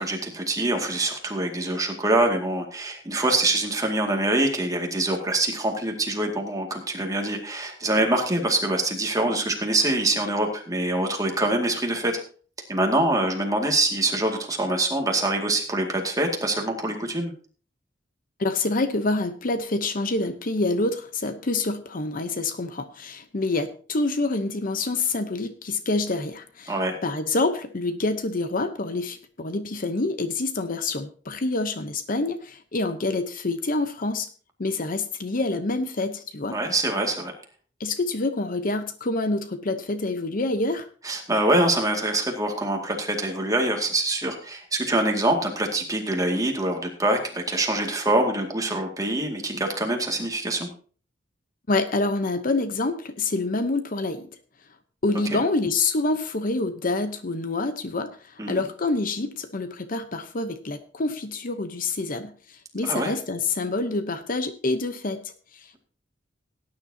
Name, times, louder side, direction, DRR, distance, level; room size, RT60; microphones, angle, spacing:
voice 1, 0.0-12.2 12.7-17.3 26.7-26.9 36.5-37.3 41.0-50.7 55.3-55.4 58.4-58.6 62.8-63.1, right 2 dB, 20° right, 2 dB, 2.2 m, -25 dB
voice 2, 18.4-26.7 27.0-34.3 34.6-36.6 37.8-40.9 51.7-54.3 55.0-65.7, left 2 dB, 50° left, 9 dB, 0.8 m, -27 dB
18.0 x 9.8 x 2.8 m, 0.41 s
head